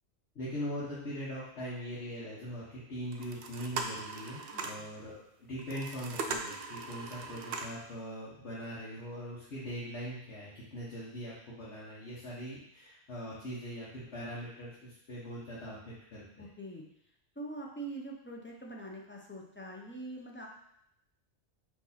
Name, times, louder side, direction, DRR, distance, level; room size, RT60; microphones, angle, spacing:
voice 1, 0.3-16.5, equal, 90° left, -8 dB, 1.4 m, -41 dB
sound 1, 3.1-4.9 5.6-7.9, right 4 dB, 65° right, 0.7 m, -39 dB
voice 2, 4.5-4.8 16.4-16.8 17.4-20.5, right 2 dB, 15° left, -1 dB, 0.4 m, -44 dB
4.6 x 2.8 x 4.1 m, 0.75 s
omnidirectional pair, 1.1 m